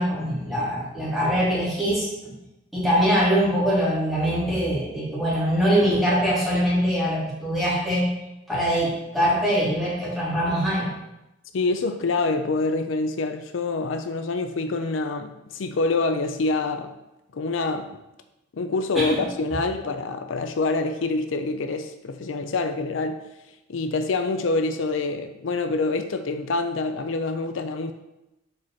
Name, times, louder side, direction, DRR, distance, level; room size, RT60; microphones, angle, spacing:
voice 1, 0.0-2.3 2.7-8.1 8.5-10.9 18.9-19.2, equal, ahead, -9 dB, 2.7 m, -23 dB
voice 2, 11.5-17.0 17.3-17.9 18.5-23.2 23.7-27.9, left 3 dB, 80° left, 8 dB, 0.5 m, -26 dB
5.1 x 4.5 x 5.6 m, 0.92 s
head